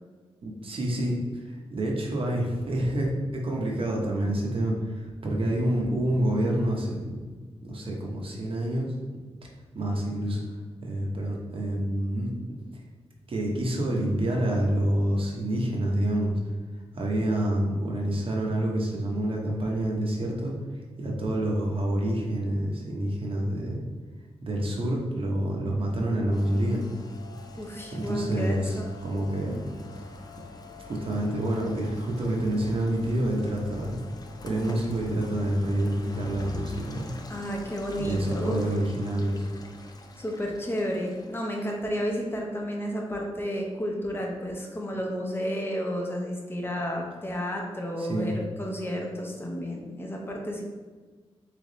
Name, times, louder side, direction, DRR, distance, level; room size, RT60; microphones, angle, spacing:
voice 1, 0.4-7.2 7.6-8.9 9.7-10.4 10.8-12.3 13.3-16.4 16.9-20.5 21.0-23.8 24.4-26.8 27.9-29.6 30.9-34.0 34.4-37.0 38.0-39.5 48.0-48.3, right 1 dB, 55° right, -1 dB, 0.9 m, -27 dB
Rain, 26.3-41.7, left 3 dB, 35° left, 0.4 m, -45 dB
voice 2, 27.6-28.8 37.3-38.6 40.2-50.6, equal, 20° left, 0 dB, 0.8 m, -31 dB
3.4 x 3.1 x 4.0 m, 1.4 s
wide cardioid pair, 90°, 11 cm